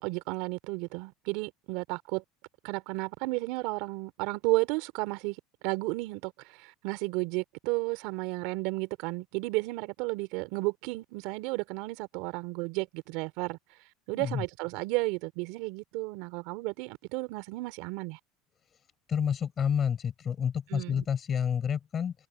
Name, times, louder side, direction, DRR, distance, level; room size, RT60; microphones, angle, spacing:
voice 1, 0.0-2.2 2.6-5.4 5.6-13.6 14.1-18.2 20.7-21.0, right 24 dB, 70° right, 3.4 m, -33 dB
voice 2, 14.1-14.4 19.1-22.1, left 8 dB, 35° left, 6.9 m, -29 dB
supercardioid pair, 100°, 0 cm